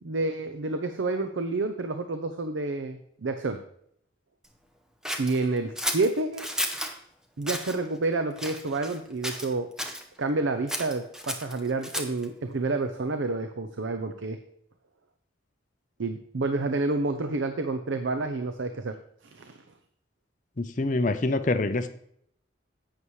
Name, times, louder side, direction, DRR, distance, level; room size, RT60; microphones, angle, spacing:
voice 1, 0.0-3.6 5.2-6.5 7.4-9.7 10.2-14.4 16.0-18.9 19.3-19.6, right 3 dB, 80° right, 8 dB, 0.7 m, -29 dB
Scissors, 5.0-6.9 7.4-7.8 8.4-9.0 9.2-10.0 10.7-12.2, equal, 5° right, 0.7 m, -33 dB
voice 2, 20.6-21.9, left 2 dB, 40° left, 10 dB, 0.6 m, -25 dB
11.0 x 8.4 x 3.2 m, 0.69 s
head